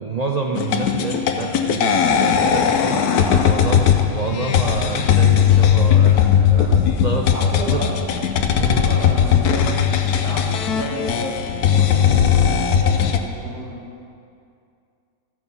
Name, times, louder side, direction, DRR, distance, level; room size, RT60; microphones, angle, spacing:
voice 1, 0.0-3.0 3.4-7.3 7.7-7.8 8.6-8.9, right 3 dB, 75° right, 0 dB, 0.3 m, -28 dB
sound 1, 0.5-13.2, left 8 dB, 70° left, 1.1 m, -18 dB
voice 2, 3.1-3.5 6.5-7.9 8.4-13.8, right 1 dB, 60° right, -5 dB, 2.7 m, -32 dB
13.5 x 6.3 x 5.4 m, 2.4 s
omnidirectional pair, 1.8 m